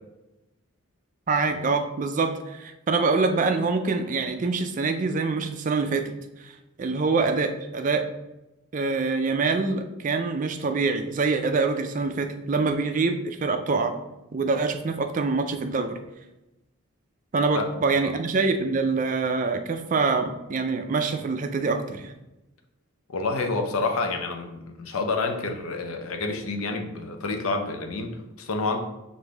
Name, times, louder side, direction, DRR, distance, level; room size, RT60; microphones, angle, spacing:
voice 1, 1.3-6.1 6.4-8.1 8.7-14.0 14.3-16.0 17.3-22.1, right 4 dB, 35° right, 7 dB, 0.3 m, -25 dB
voice 2, 17.5-18.1 23.1-28.8, left 3 dB, 70° left, 4 dB, 0.6 m, -29 dB
5.0 x 2.6 x 3.4 m, 0.97 s
head